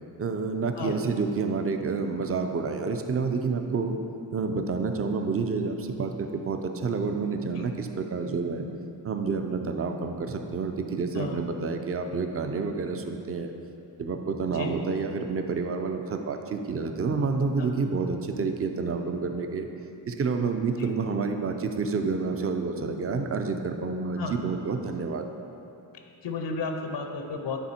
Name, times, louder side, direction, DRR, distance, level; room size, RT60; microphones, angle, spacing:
voice 1, 0.2-4.0 4.3-8.7 9.0-13.5 14.0-19.7 20.1-25.2, right 4 dB, 35° right, 6 dB, 0.4 m, -29 dB
voice 2, 26.2-27.6, left 3 dB, 80° left, 4 dB, 0.7 m, -33 dB
9.4 x 3.5 x 4.3 m, 2.9 s
wide cardioid pair, 130°, 42 cm